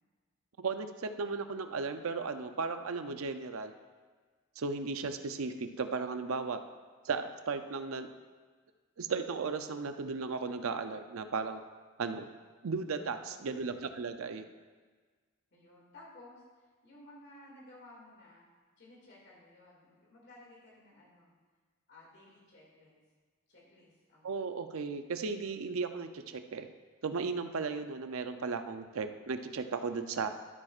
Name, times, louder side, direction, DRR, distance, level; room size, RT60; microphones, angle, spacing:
voice 1, 0.6-3.7 4.6-6.6 7.0-8.1 9.0-11.6 12.0-12.3 12.6-14.4 24.2-26.7 27.0-30.3, right 4 dB, 75° right, 8 dB, 0.5 m, -35 dB
voice 2, 13.1-13.6 15.5-16.4 16.8-18.5 18.8-21.3 21.9-23.0 23.5-24.4, left 1 dB, 55° left, -5 dB, 2.3 m, -56 dB
12.5 x 8.7 x 2.4 m, 1.5 s
head